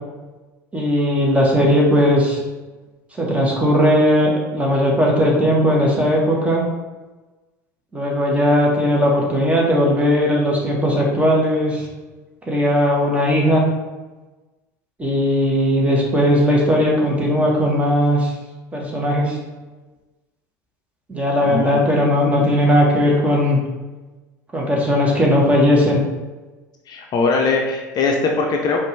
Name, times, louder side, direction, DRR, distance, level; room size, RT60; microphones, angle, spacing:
voice 1, 0.7-2.4 3.2-6.7 7.9-11.9 12.5-13.6 15.0-18.3 18.7-19.4 21.1-23.6 24.5-26.0, equal, 15° right, -2 dB, 1.3 m, -17 dB
voice 2, 21.4-21.8 26.9-28.8, left 4 dB, 45° left, 1 dB, 0.6 m, -20 dB
5.1 x 2.6 x 3.2 m, 1.2 s
hypercardioid pair, 75°, 10 cm